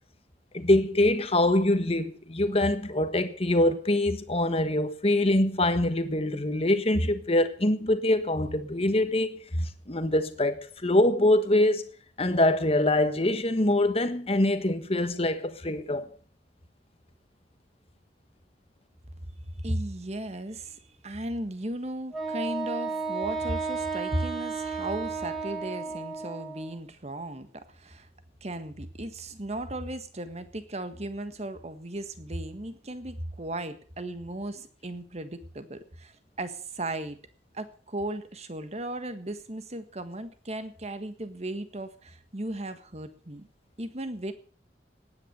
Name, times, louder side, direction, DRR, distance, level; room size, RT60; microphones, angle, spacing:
voice 1, 0.5-11.9 12.2-16.1, left 1 dB, 35° left, 1.4 m, -24 dB
voice 2, 19.6-28.1 28.4-37.2 37.5-43.5 43.8-44.3, right 1 dB, 35° right, 1.6 m, -36 dB
Wind instrument woodwind instrument, 22.1-26.8, right 4 dB, ahead, 2.8 m, -33 dB
17.5 x 9.8 x 6.7 m
head